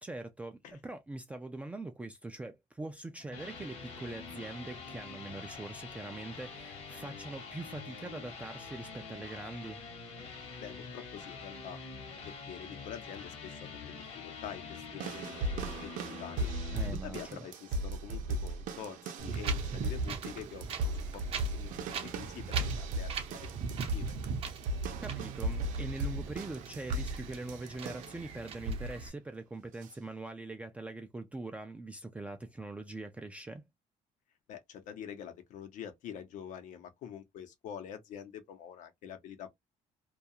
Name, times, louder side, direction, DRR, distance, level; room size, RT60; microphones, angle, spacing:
voice 1, 0.0-9.8 16.7-17.4 25.0-33.6, right 2 dB, 10° right, 0.3 m, -42 dB
sound 1, 3.0-17.0, left 5 dB, 50° left, 1.0 m, -46 dB
voice 2, 10.6-11.8 12.2-16.5 16.9-23.5 23.9-24.1 34.5-39.5, left 9 dB, 75° left, 0.8 m, -46 dB
sound 2, 15.0-28.2 28.6-29.0 29.8-29.9, right 1 dB, 85° right, 0.6 m, -37 dB
Wind, 19.2-29.1, right 6 dB, 45° right, 0.6 m, -41 dB
2.3 x 2.3 x 2.7 m
cardioid pair, 160°, 13 cm